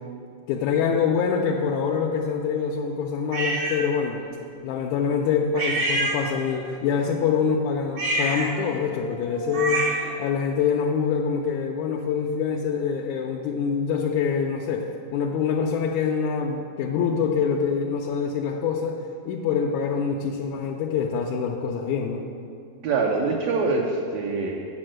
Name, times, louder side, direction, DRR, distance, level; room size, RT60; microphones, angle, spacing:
voice 1, 0.5-4.2 4.6-9.8 10.2-14.9 15.1-19.0 19.3-22.2, left 6 dB, 80° left, 0 dB, 1.8 m, -25 dB
sound 1, 3.3-3.8 5.6-6.6 7.9-10.1, right 1 dB, 55° right, 1.2 m, -27 dB
voice 2, 22.8-24.6, right 3 dB, 75° right, 0 dB, 1.7 m, -24 dB
8.5 x 5.3 x 7.6 m, 2.5 s
omnidirectional pair, 3.7 m